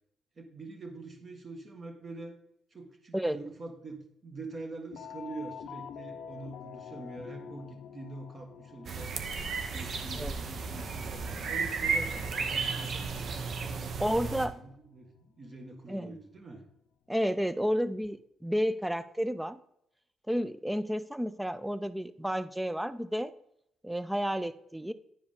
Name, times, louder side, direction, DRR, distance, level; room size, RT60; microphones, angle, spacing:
voice 1, 0.3-2.4 2.7-9.2 9.7-14.0 14.5-16.6, right 2 dB, 40° right, 3 dB, 1.5 m, -45 dB
sound 1, 4.9-15.6 16.3-16.4 17.7-18.1, left 8 dB, 80° left, 0.5 m, -48 dB
sound 2, 8.9-14.5, right 5 dB, 55° right, 0.7 m, -34 dB
voice 2, 14.0-14.6 15.9-16.2 17.1-19.6 20.3-23.3 23.8-24.9, equal, 5° right, 14 dB, 0.4 m, -31 dB
10.5 x 4.8 x 3.6 m, 0.77 s
cardioid pair, 90°, 0 cm